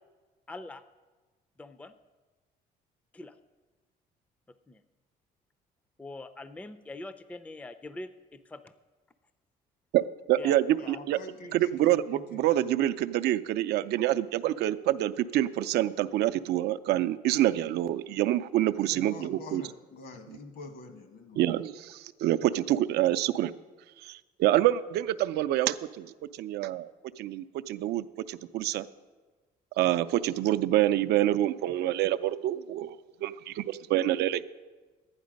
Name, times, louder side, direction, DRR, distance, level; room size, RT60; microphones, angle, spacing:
voice 1, 0.5-0.8 1.6-1.9 3.1-3.3 4.7-4.8 6.0-8.7 10.4-11.0, left 2 dB, 10° left, 12 dB, 0.4 m, -43 dB
voice 2, 10.3-11.2 11.5-19.6 21.4-23.5 24.0-26.1 26.4-26.9 27.2-28.9 29.8-34.4, right 13 dB, 75° right, 12 dB, 0.5 m, -27 dB
voice 3, 10.8-12.7 18.7-21.4, left 2 dB, 65° left, 7 dB, 1.3 m, -46 dB
11.5 x 9.7 x 5.2 m, 1.3 s
cardioid pair, 110°, 17 cm